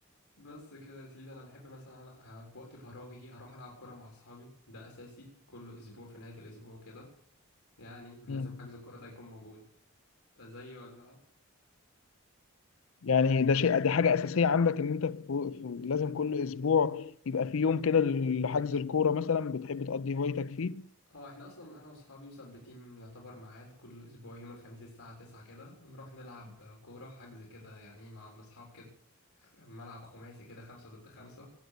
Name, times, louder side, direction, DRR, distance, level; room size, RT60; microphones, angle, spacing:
voice 1, 0.4-7.1 7.8-9.7 10.4-11.2 21.1-28.9 29.4-31.5, left 1 dB, 80° left, 3.8 m, -49 dB
voice 2, 13.0-20.9, left 6 dB, 65° left, 0.5 m, -28 dB
19.0 x 8.0 x 6.7 m
head